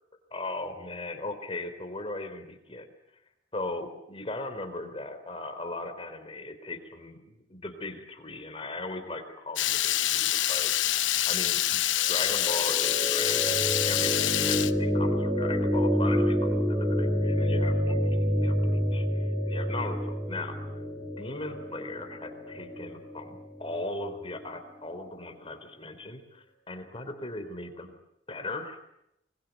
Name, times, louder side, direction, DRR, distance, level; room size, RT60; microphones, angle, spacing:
voice 1, 0.3-2.9 3.5-10.7 11.2-27.9 28.3-28.8, left 2 dB, 30° left, 8 dB, 3.8 m, -38 dB
Water tap faucet / Liquid, 9.6-14.7, left 13 dB, 80° left, 1.0 m, -26 dB
sound 1, 12.1-24.1, equal, 10° right, 2.6 m, -28 dB
25.0 x 21.5 x 9.2 m, 0.81 s
head